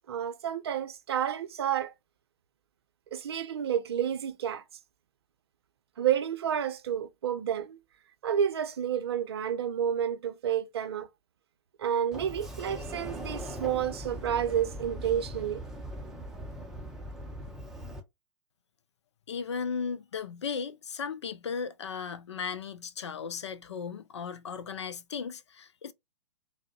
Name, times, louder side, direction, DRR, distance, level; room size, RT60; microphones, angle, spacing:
voice 1, 0.1-1.9 3.1-4.6 6.0-7.8 8.2-11.1 11.8-15.6, right 9 dB, 55° right, 0.6 m, -30 dB
Sliding door, 12.1-18.0, equal, 5° right, 0.5 m, -40 dB
voice 2, 19.3-25.9, left 6 dB, 65° left, 0.4 m, -36 dB
3.5 x 2.1 x 2.2 m
figure-of-eight pair, 110°, 16 cm